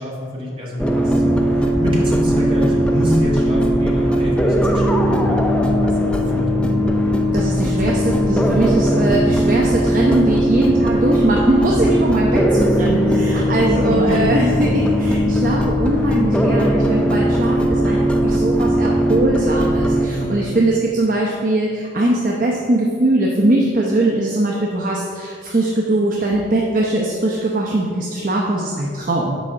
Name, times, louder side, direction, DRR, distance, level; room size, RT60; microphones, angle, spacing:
voice 1, 0.0-7.0 7.7-8.0 8.8-9.1 13.6-14.3 14.6-14.8 20.0-20.6, left 1 dB, 25° right, -4 dB, 1.7 m, -26 dB
sound 1, 0.8-20.1, equal, 5° left, 0.4 m, -18 dB
voice 2, 7.3-29.4, right 2 dB, 45° right, -2 dB, 0.7 m, -20 dB
6.2 x 4.7 x 6.5 m, 2.4 s
head